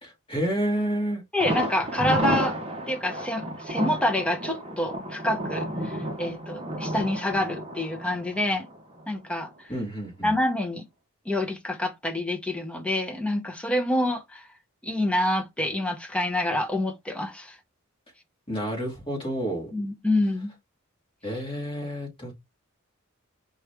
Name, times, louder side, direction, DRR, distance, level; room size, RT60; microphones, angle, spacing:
voice 1, 0.0-1.2 9.7-10.4 18.5-19.7 21.2-22.3, right 1 dB, 25° left, 2.1 m, -29 dB
voice 2, 1.3-2.6 2.9-8.7 9.1-9.5 10.2-10.8 11.3-14.5 14.8-17.5 19.7-20.5, left 1 dB, 5° left, 0.7 m, -27 dB
Thunder, 1.4-9.2 9.5-9.6 10.0-10.1, right 1 dB, 25° right, 1.0 m, -31 dB
4.9 x 3.1 x 3.3 m
head